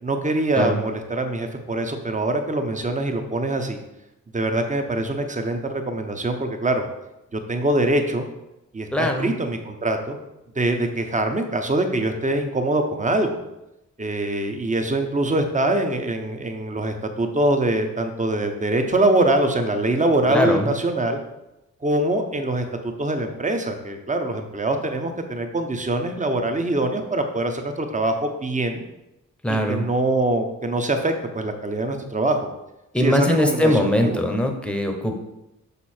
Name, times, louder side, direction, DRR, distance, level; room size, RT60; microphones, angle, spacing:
voice 1, 0.0-3.8 4.3-6.8 7.3-8.3 8.7-10.2 10.6-13.4 14.0-21.2 21.8-22.7 23.0-28.8 29.5-32.5 33.0-34.2, right 2 dB, 25° right, 5 dB, 0.9 m, -23 dB
voice 2, 8.9-9.3 20.3-20.7 29.4-29.8 32.9-35.2, left 1 dB, 5° left, 4 dB, 0.9 m, -21 dB
6.8 x 5.5 x 4.4 m, 0.91 s
wide cardioid pair, 125°, 31 cm